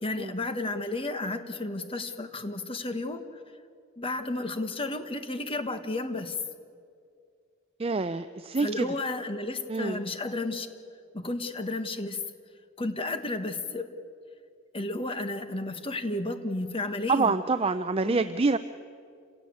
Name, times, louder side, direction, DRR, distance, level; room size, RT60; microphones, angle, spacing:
voice 1, 0.0-3.2 4.0-6.3 8.6-10.7 11.1-12.2 12.8-13.9 14.7-17.3 18.0-18.2, left 2 dB, 25° left, 8 dB, 1.5 m, -32 dB
voice 2, 7.8-8.9 9.7-10.0 17.1-18.6, right 3 dB, 30° right, 11 dB, 0.5 m, -26 dB
28.0 x 17.0 x 8.6 m, 2.3 s
head